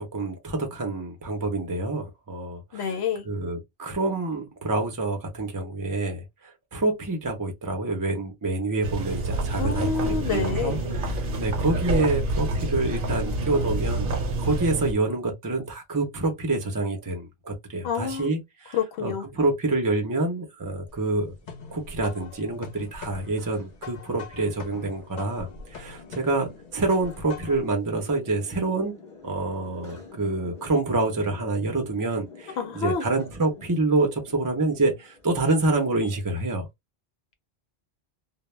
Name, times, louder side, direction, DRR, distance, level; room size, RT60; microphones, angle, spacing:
voice 1, 0.0-2.9 3.3-21.3 21.7-28.9 29.2-36.7, right 2 dB, 25° right, 0.5 m, -27 dB
voice 2, 2.7-3.2 9.6-10.8 17.8-18.3 18.7-19.2 32.6-33.1, left 6 dB, 85° left, 0.8 m, -28 dB
sound 1, 8.8-14.9, right 2 dB, 60° right, 0.8 m, -27 dB
sound 2, 20.4-36.1, left 3 dB, 35° left, 0.9 m, -49 dB
sound 3, 20.9-27.7, left 5 dB, 55° left, 0.8 m, -43 dB
2.2 x 2.0 x 3.1 m
omnidirectional pair, 1.1 m